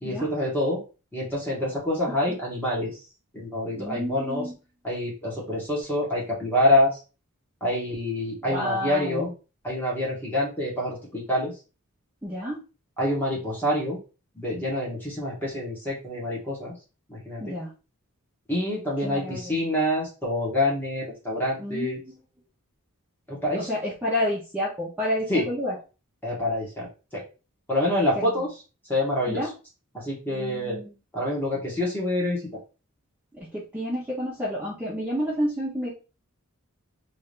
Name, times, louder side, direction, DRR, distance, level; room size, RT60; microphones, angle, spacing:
voice 1, 0.0-0.8 1.1-3.0 3.3-4.5 4.8-7.0 7.6-9.3 9.6-11.5 13.0-14.0 14.3-16.7 17.1-17.6 18.5-22.0 23.3-23.7 25.3-25.5 26.2-26.9 27.1-27.2 27.7-28.5 28.8-29.4 29.9-30.8 31.1-32.5, left 1 dB, 10° left, -5 dB, 1.6 m, -26 dB
voice 2, 3.8-4.5 8.4-9.3 12.2-12.6 17.4-17.7 19.0-19.6 21.6-22.1 23.5-25.7 28.1-28.3 29.3-29.5 30.3-30.9 33.3-35.9, equal, 10° right, -8 dB, 1.0 m, -30 dB
3.6 x 2.8 x 3.3 m, 0.32 s
head